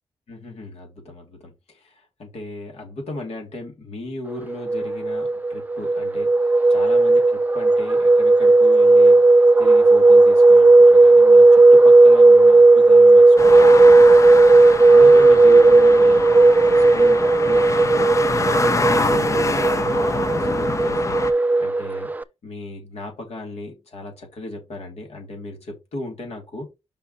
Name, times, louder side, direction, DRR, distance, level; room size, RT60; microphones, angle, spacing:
voice 1, 0.3-9.2 9.6-14.1 14.9-16.2 16.6-21.2 21.6-22.1 22.4-26.7, left 2 dB, 80° left, 2.9 m, -36 dB
sound 1, 4.5-22.2, right 2 dB, 15° right, 0.5 m, -13 dB
sound 2, 13.4-21.3, left 3 dB, 30° left, 0.6 m, -26 dB
5.6 x 4.7 x 4.2 m
cardioid pair, 75°, 11 cm